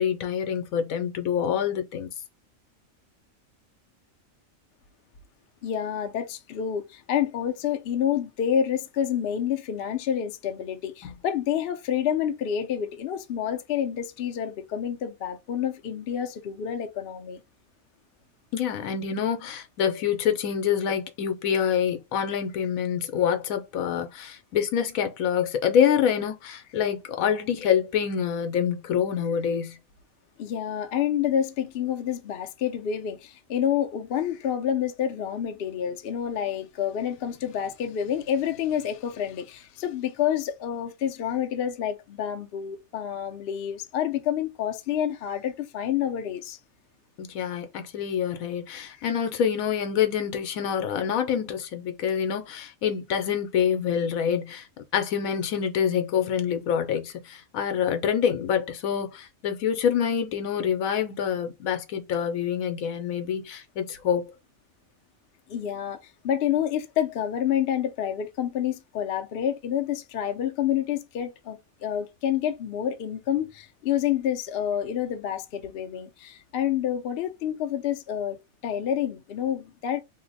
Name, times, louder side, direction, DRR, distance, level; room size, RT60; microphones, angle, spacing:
voice 1, 0.0-2.1 11.0-11.1 18.5-29.8 47.2-54.7 54.9-64.3, left 8 dB, 80° left, 1.1 m, -26 dB
voice 2, 5.6-17.4 30.4-46.6 49.0-49.1 65.5-66.0 66.2-78.4 78.6-80.0, left 9 dB, 60° left, 0.6 m, -28 dB
2.8 x 2.0 x 3.9 m
omnidirectional pair, 1.4 m